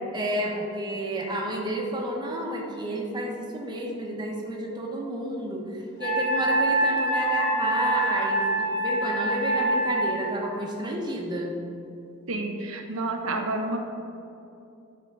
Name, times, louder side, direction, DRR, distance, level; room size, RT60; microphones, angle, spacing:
voice 1, 0.1-11.6, right 1 dB, 20° right, -1 dB, 1.1 m, -31 dB
Wind instrument woodwind instrument, 6.0-10.3, right 1 dB, 60° left, 1.3 m, -25 dB
voice 2, 12.3-13.8, right 2 dB, 90° right, 3 dB, 0.9 m, -29 dB
11.5 x 3.8 x 6.0 m, 2.7 s
head